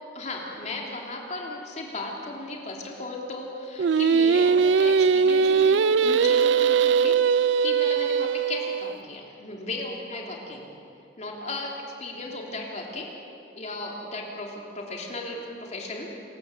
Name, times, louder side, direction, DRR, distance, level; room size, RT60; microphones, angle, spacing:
voice 1, 0.0-10.7 11.2-13.1 13.6-16.1, left 2 dB, 40° left, 0 dB, 3.2 m, -36 dB
Singing, 3.8-8.9, right 6 dB, 80° right, 0.4 m, -21 dB
25.5 x 14.5 x 7.9 m, 2.6 s
head